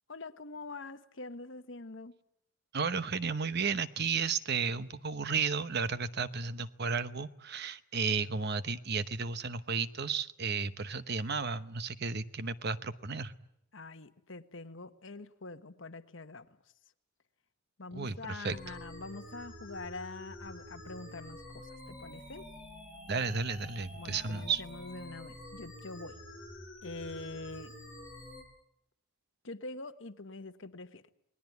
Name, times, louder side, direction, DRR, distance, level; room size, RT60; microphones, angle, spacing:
voice 1, 0.1-2.1 13.7-16.5 17.8-22.5 23.9-26.2 26.8-27.7 29.4-31.1, left 3 dB, 65° left, 9 dB, 1.4 m, -45 dB
voice 2, 2.7-13.3 17.9-18.6 23.1-24.6, right 5 dB, 55° right, 13 dB, 1.0 m, -33 dB
sound 1, 18.4-28.4, left 1 dB, 5° right, 7.1 m, -48 dB
29.0 x 20.0 x 9.4 m, 0.79 s
head